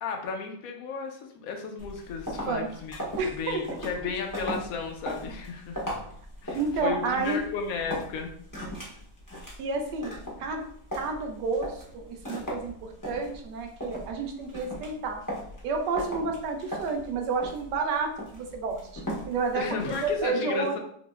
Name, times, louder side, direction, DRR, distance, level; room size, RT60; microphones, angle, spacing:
voice 1, 0.0-3.0 3.2-5.8 6.4-8.3 19.5-20.8, left 5 dB, 70° left, 3 dB, 0.8 m, -34 dB
sound 1, 1.8-20.3, equal, 25° left, 0.4 m, -39 dB
voice 2, 3.2-3.7 6.5-7.4 9.6-10.6 10.9-15.2 15.6-20.8, right 4 dB, 75° right, 3 dB, 1.2 m, -30 dB
5.7 x 2.0 x 2.3 m, 0.63 s
omnidirectional pair, 1.9 m